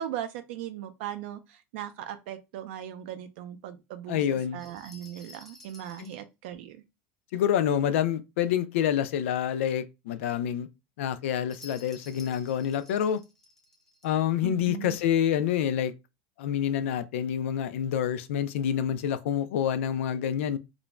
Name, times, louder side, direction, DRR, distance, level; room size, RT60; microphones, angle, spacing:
voice 1, 0.0-6.8 14.4-15.0, right 11 dB, 60° right, 0.4 m, -38 dB
voice 2, 4.1-4.6 6.0-6.1 7.3-10.7 11.0-13.2 14.0-15.9 16.4-20.6, left 9 dB, 90° left, 0.3 m, -27 dB
sound 1, 4.6-6.2 11.5-14.1, left 2 dB, 5° left, 0.4 m, -52 dB
2.4 x 2.1 x 3.1 m
supercardioid pair, 170°, 7 cm